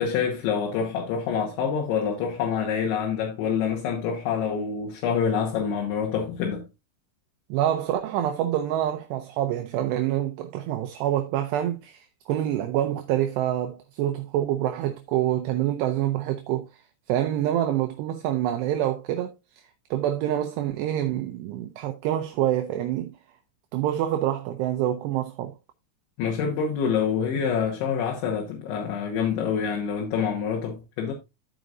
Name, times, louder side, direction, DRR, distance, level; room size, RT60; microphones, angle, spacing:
voice 1, 0.0-6.6 26.2-31.1, left 7 dB, 75° left, 3.5 m, -26 dB
voice 2, 7.5-16.8 17.1-19.3 19.9-23.1 23.7-25.5, right 12 dB, 85° right, 2.4 m, -26 dB
14.5 x 5.1 x 2.5 m
omnidirectional pair, 5.5 m